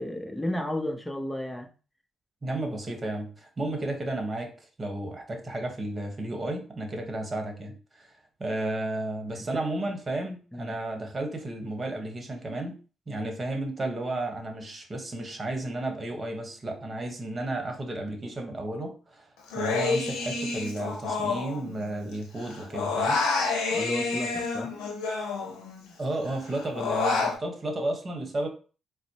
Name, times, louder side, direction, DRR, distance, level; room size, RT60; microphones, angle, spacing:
voice 1, 0.0-1.7 9.5-9.6 10.5-10.7 23.7-24.7, left 1 dB, 10° left, 0.7 m, -33 dB
voice 2, 2.4-8.1 8.4-12.8 13.1-19.3 19.5-23.2 26.0-28.5, right 1 dB, 35° right, 1.1 m, -33 dB
Human voice, 19.5-22.1 22.4-25.9 26.3-27.4, left 4 dB, 80° left, 0.7 m, -29 dB
4.1 x 2.0 x 2.8 m
hypercardioid pair, 55°, 0 cm